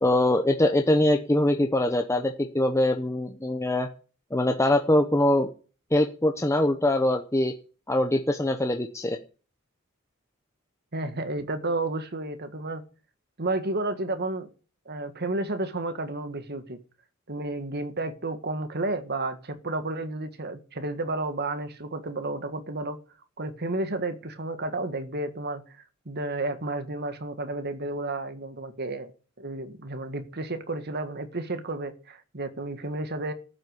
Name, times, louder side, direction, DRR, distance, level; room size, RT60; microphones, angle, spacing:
voice 1, 0.0-3.9 4.3-5.5 5.9-7.5 7.9-9.2, left 1 dB, 15° left, 0.9 m, -23 dB
voice 2, 10.9-12.8 13.4-14.5 14.9-16.8 17.3-23.0 23.4-25.8 26.1-29.1 29.4-33.3, right 2 dB, 50° right, 1.7 m, -31 dB
13.5 x 8.1 x 8.2 m
head